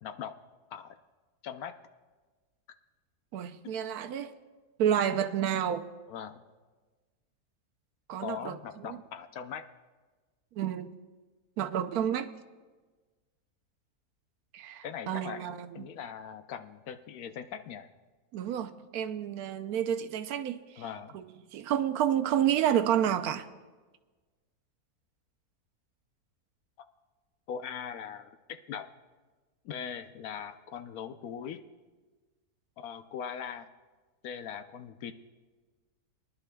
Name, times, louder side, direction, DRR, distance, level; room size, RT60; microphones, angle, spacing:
voice 1, 0.0-0.3 0.7-0.9 1.4-1.7 3.6-3.7 6.1-6.4 8.2-9.6 14.8-17.9 20.8-21.2 27.5-28.9 29.6-31.6 32.8-33.7 34.2-35.1, left 8 dB, 75° left, 1.1 m, -40 dB
voice 2, 3.3-4.3 4.8-5.9 8.1-8.6 8.8-9.0 10.6-10.9 11.6-12.3 14.5-15.9 18.3-20.8 21.1-21.2 21.5-23.5, right 9 dB, 75° right, 1.1 m, -30 dB
22.5 x 11.5 x 2.3 m
omnidirectional pair, 1.6 m